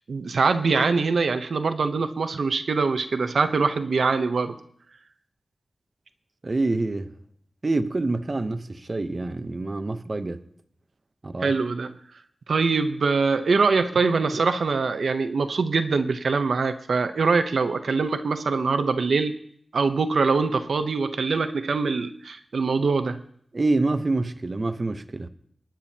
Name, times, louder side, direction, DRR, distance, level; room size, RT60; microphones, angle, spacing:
voice 1, 0.1-4.6 11.4-11.9 12.5-19.4 19.7-23.2, right 4 dB, 85° right, 0.7 m, -23 dB
voice 2, 6.4-7.1 7.6-10.4 11.2-11.5 23.5-25.3, right 2 dB, 40° right, 0.7 m, -26 dB
27.0 x 10.5 x 2.8 m
wide cardioid pair, 85°, 0 cm